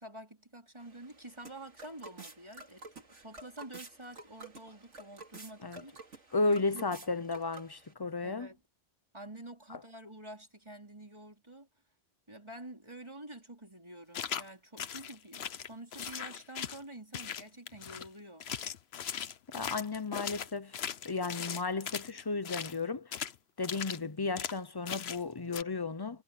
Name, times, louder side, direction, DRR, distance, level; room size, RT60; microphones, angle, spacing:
voice 1, 0.0-6.8 8.2-8.6 9.1-11.7 12.3-18.5, right 1 dB, 25° right, 4.7 m, -49 dB
sound 1, 0.8-7.9, right 3 dB, 85° right, 3.1 m, -51 dB
voice 2, 6.3-8.5 9.7-9.8 19.5-20.8 21.0-23.1 23.6-26.2, left 3 dB, 20° left, 0.8 m, -34 dB
footsteps-mud, 14.1-14.5 14.8-16.8 17.1-18.1 18.4-22.8 23.1-23.4 23.6-24.0 24.4-24.6 24.9-25.2 25.5-25.6, left 8 dB, 65° left, 1.0 m, -39 dB
omnidirectional pair, 1.2 m